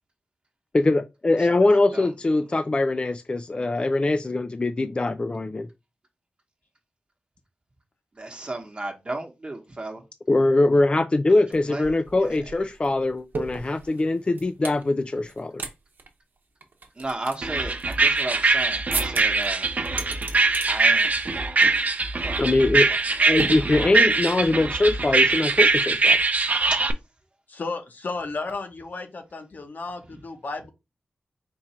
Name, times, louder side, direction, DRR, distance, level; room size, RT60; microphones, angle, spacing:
voice 1, 0.7-5.7 10.3-15.6 22.4-22.9 23.3-26.2, left 2 dB, 30° left, 0.3 m, -22 dB
voice 2, 8.2-10.0 11.7-11.9 12.2-12.3 17.0-19.7 20.7-21.1 22.1-22.5 22.9-23.0 23.2-23.9 26.7-26.8, right 2 dB, 35° right, 1.0 m, -34 dB
sound 1, 11.5-11.6 11.8-14.8 15.2-15.7 16.0-16.1 16.6-18.5 18.9-19.5 19.8-20.7 21.0-21.3 21.6-21.9 22.2-22.4 23.4-24.1, right 3 dB, 75° right, 0.9 m, -34 dB
sound 2, 17.4-26.9, right 3 dB, 50° right, 0.6 m, -22 dB
voice 3, 27.5-30.7, left 3 dB, 60° left, 0.9 m, -33 dB
4.5 x 2.4 x 4.2 m
wide cardioid pair, 70°, 3 cm